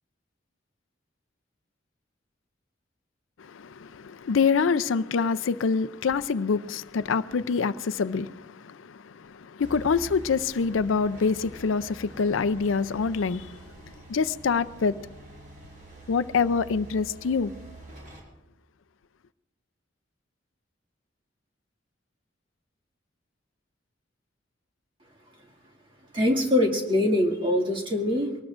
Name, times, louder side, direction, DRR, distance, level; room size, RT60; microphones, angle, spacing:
voice 1, 3.4-13.6 14.1-15.0 16.1-17.5, left 5 dB, 90° left, 0.5 m, -26 dB
sound 1, 9.6-18.2, right 1 dB, 45° right, 5.0 m, -46 dB
voice 2, 26.1-28.4, left 1 dB, 25° right, 2.1 m, -23 dB
24.0 x 19.5 x 2.5 m
head